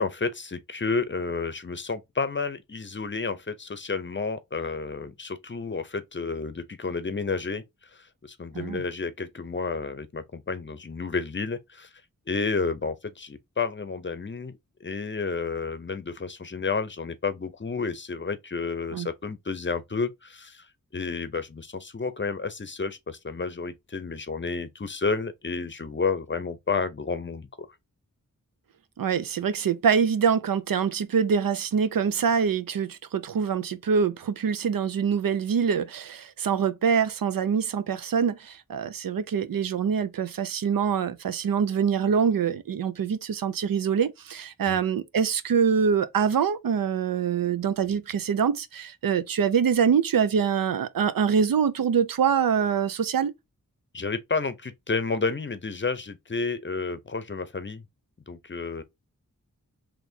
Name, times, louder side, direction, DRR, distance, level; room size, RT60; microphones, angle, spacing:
voice 1, 0.0-11.9 12.3-14.5 14.8-20.7 20.9-27.7 44.6-44.8 53.9-57.8 58.3-58.8, left 4 dB, 35° left, 0.6 m, -31 dB
voice 2, 29.0-53.3, right 7 dB, 80° right, 0.6 m, -25 dB
4.2 x 3.0 x 2.7 m
wide cardioid pair, 90°, 34 cm